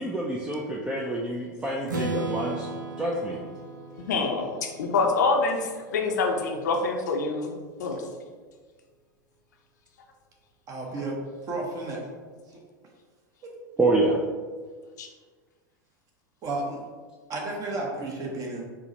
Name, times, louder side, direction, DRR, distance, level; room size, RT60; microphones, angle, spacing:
voice 1, 0.0-2.7 3.0-3.5 13.8-14.2, right 2 dB, 10° right, -2 dB, 0.4 m, -27 dB
Strum, 1.9-5.8, right 2 dB, 85° right, 0.6 m, -35 dB
voice 2, 4.0-7.5 7.8-8.0 15.0-15.1, left 3 dB, 70° left, 2 dB, 0.5 m, -26 dB
voice 3, 10.7-11.2 11.4-12.0 13.4-13.5 16.4-16.8 17.3-18.6, right 2 dB, 35° right, -1 dB, 0.8 m, -32 dB
4.6 x 2.1 x 2.7 m, 1.5 s
figure-of-eight pair, 90°, 10 cm